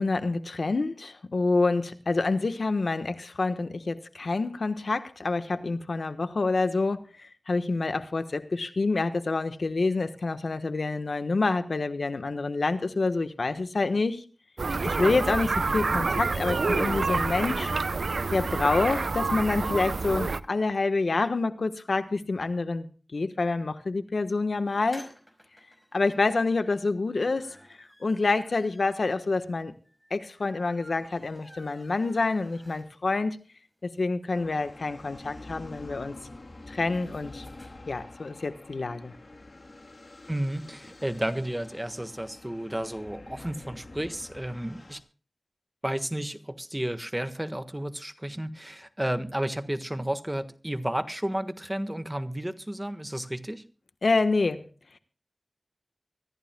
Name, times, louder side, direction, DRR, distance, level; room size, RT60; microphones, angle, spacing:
voice 1, 0.0-14.2 14.8-17.7 18.3-25.1 25.9-29.7 30.1-33.4 33.8-36.1 36.7-37.4 37.9-39.1 54.0-54.6, left 3 dB, 80° left, 9 dB, 1.2 m, -27 dB
sound 1, 14.6-20.4, right 3 dB, 90° right, 0.6 m, -28 dB
sound 2, 24.7-33.2 33.6-33.7 34.0-34.1 34.3-37.7, equal, ahead, 5.1 m, -54 dB
sound 3, 34.3-45.0, left 2 dB, 60° left, 2.0 m, -47 dB
voice 2, 40.3-45.0 45.8-53.6, right 1 dB, 15° right, 9 dB, 1.4 m, -32 dB
24.5 x 14.5 x 2.3 m, 0.38 s
wide cardioid pair, 55°, 0 cm